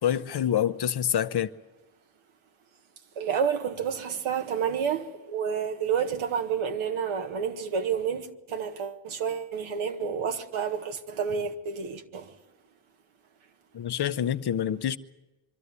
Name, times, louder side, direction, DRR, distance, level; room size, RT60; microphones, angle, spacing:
voice 1, 0.0-1.5 13.7-15.0, left 10 dB, 55° left, 1.0 m, -26 dB
voice 2, 3.2-12.3, right 7 dB, 75° right, 1.8 m, -30 dB
24.5 x 12.5 x 9.6 m
cardioid pair, 75°, 49 cm